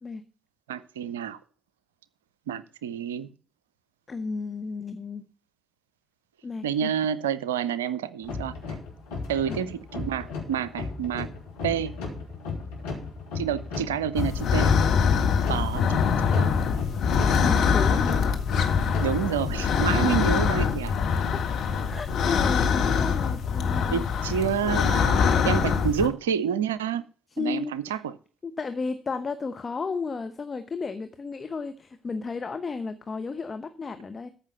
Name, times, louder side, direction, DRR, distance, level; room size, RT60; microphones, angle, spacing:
voice 1, 0.7-1.4 2.5-3.3 6.6-8.6 9.3-11.3 11.6-11.9 13.3-14.7 15.5-16.0 16.4-16.6 19.0-20.9 23.9-27.0 27.4-28.1, right 8 dB, 75° right, 0.5 m, -28 dB
voice 2, 4.1-5.2 6.4-6.9 9.5-9.6 17.4-18.2 21.3-21.4 21.9-24.4 27.3-28.0 28.4-34.3, left 4 dB, 35° left, 1.0 m, -33 dB
sound 1, 8.2-20.1, left 4 dB, 75° left, 3.1 m, -36 dB
sound 2, 14.1-26.1, left 6 dB, 55° left, 1.6 m, -24 dB
14.0 x 5.6 x 5.6 m
figure-of-eight pair, 40°, 0 cm